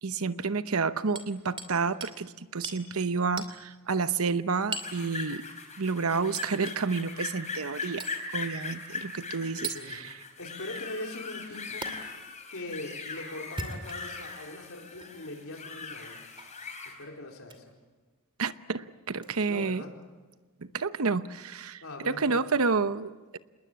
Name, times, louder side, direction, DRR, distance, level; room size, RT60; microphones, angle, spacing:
voice 1, 0.0-5.4 5.8-8.1 8.3-10.1 18.4-19.8 20.7-23.4, right 4 dB, 70° right, 13 dB, 0.9 m, -30 dB
Hammer, 1.1-1.7 2.0-2.2 2.6-2.8 3.4-3.6 4.7-5.0 6.3-6.5 8.0-8.2 9.6-9.8 11.8-11.9 13.4-14.2 14.9-15.1 16.4-16.6 17.4-17.6 19.2-19.3, right 3 dB, 25° right, 2.5 m, -38 dB
sound 1, 4.7-17.0, left 4 dB, 30° left, 4.2 m, -40 dB
voice 2, 9.6-10.0 10.4-11.9 12.5-16.2 16.8-17.7 19.5-20.0 21.8-22.4, left 2 dB, 65° left, 1 dB, 4.4 m, -41 dB
27.0 x 20.5 x 8.6 m, 1.3 s
head